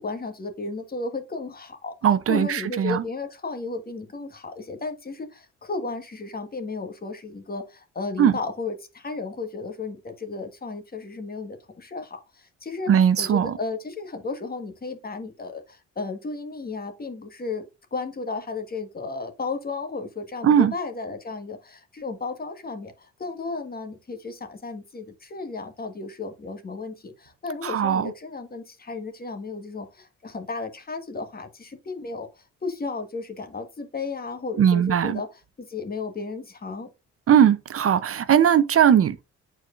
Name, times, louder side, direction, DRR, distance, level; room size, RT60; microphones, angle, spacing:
voice 1, 0.0-1.9 2.3-12.9 13.2-35.3 35.6-36.9, left 3 dB, 30° left, 1.5 m, -34 dB
voice 2, 2.0-3.0 8.2-8.3 12.9-13.6 20.4-20.7 27.6-28.1 34.6-35.2 37.3-39.2, right 9 dB, 50° right, 0.7 m, -19 dB
9.0 x 4.6 x 2.5 m
cardioid pair, 90°, 30 cm